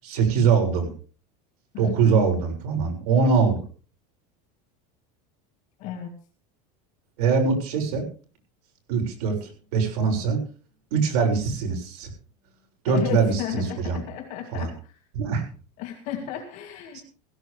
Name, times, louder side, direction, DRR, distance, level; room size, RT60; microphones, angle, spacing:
voice 1, 0.0-0.9 1.8-3.6 7.2-8.0 8.9-10.4 10.9-12.1 12.8-14.0 14.5-14.7 15.1-15.5 16.9-17.0, right 5 dB, 65° right, 3 dB, 7.0 m, -23 dB
voice 2, 1.7-2.2 5.8-6.1 12.9-15.0 15.8-17.0, left 10 dB, 35° left, 2 dB, 2.2 m, -33 dB
17.0 x 16.5 x 3.5 m, 0.38 s
supercardioid pair, 180°, 20 cm